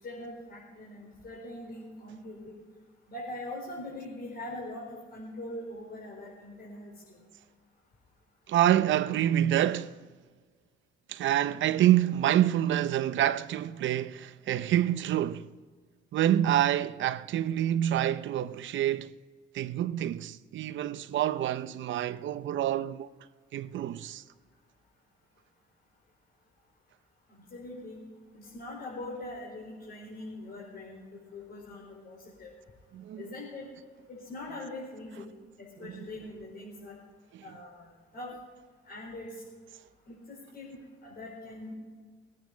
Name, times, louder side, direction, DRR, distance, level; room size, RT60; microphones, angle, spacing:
voice 1, 0.0-2.5 3.1-7.2 27.3-28.0 28.3-32.5 33.2-33.7 34.1-35.3 35.6-37.0 37.4-38.3 38.8-39.3 40.1-41.7, left 2 dB, 50° left, 4.6 m, -42 dB
voice 2, 8.5-10.0 11.1-15.5 16.1-19.1 19.5-23.1 23.5-24.2 32.9-33.2 35.9-36.0 37.3-37.4, right 12 dB, 70° right, 0.7 m, -27 dB
21.0 x 9.5 x 5.2 m
cardioid pair, 90°, 20 cm